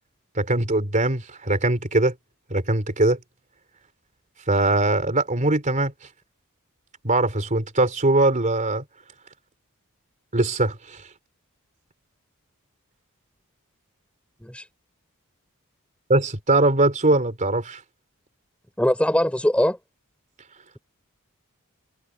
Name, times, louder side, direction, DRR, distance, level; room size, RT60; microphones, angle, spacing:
voice 1, 0.4-2.1 2.5-3.2 4.5-5.9 7.0-8.8 10.3-11.0 16.1-17.8, right 2 dB, 35° right, 3.6 m, -21 dB
voice 2, 18.8-19.8, left 1 dB, 5° left, 5.0 m, -21 dB
head